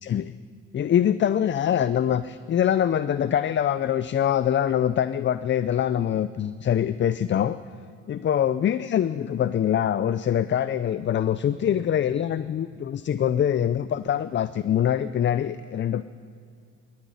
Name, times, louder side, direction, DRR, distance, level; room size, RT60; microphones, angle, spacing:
voice 1, 0.0-0.4 0.7-7.6 8.1-16.0, left 9 dB, 40° left, 14 dB, 0.5 m, -24 dB
13.0 x 9.7 x 9.7 m, 2.4 s
cardioid pair, 90°, 30 cm